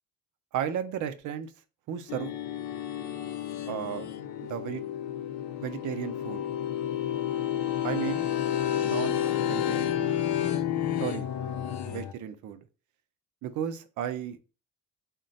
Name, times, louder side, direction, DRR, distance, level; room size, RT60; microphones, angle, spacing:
voice 1, 0.5-1.5 1.9-2.3 3.7-4.1 4.5-4.8 5.6-6.4 7.8-8.3 8.8-10.2 11.0-11.3 11.8-12.7 13.4-14.4, right 10 dB, 80° right, 9 dB, 0.6 m, -34 dB
sound 1, 2.1-12.1, left 10 dB, 70° left, 0.5 m, -30 dB
3.8 x 2.2 x 3.9 m, 0.33 s
cardioid pair, 90°, 30 cm